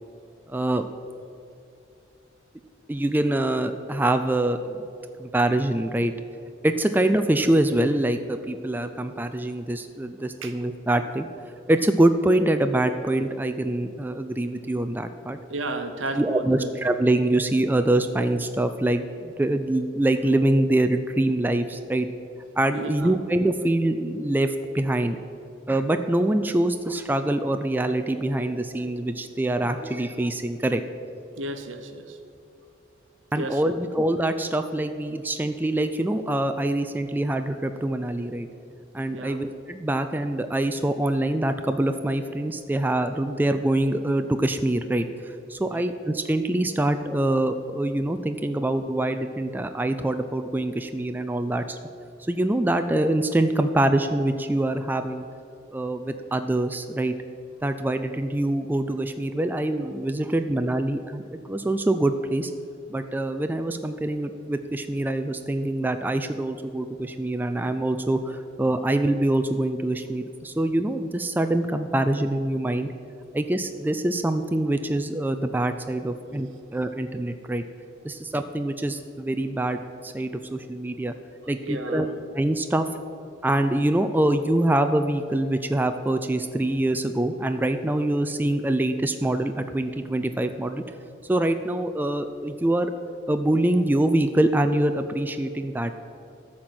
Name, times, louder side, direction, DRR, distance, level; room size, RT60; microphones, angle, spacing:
voice 1, 0.5-0.9 2.9-4.9 5.2-6.1 6.6-11.3 11.7-15.4 16.2-22.1 22.6-25.2 25.7-30.8 33.3-38.5 38.9-51.8 52.2-55.2 55.7-57.1 57.6-61.2 61.5-62.5 62.9-72.9 73.3-77.6 78.0-81.1 81.5-82.1 82.3-82.8 83.4-90.8 91.2-92.9 93.3-96.0, right 1 dB, 10° right, 8 dB, 0.3 m, -24 dB
voice 2, 15.5-16.7 22.7-23.2 31.4-32.2 33.3-33.7 39.1-39.4 45.6-45.8 81.6-82.2, right 2 dB, 85° right, 7 dB, 1.0 m, -33 dB
13.0 x 4.3 x 7.8 m, 2.6 s
head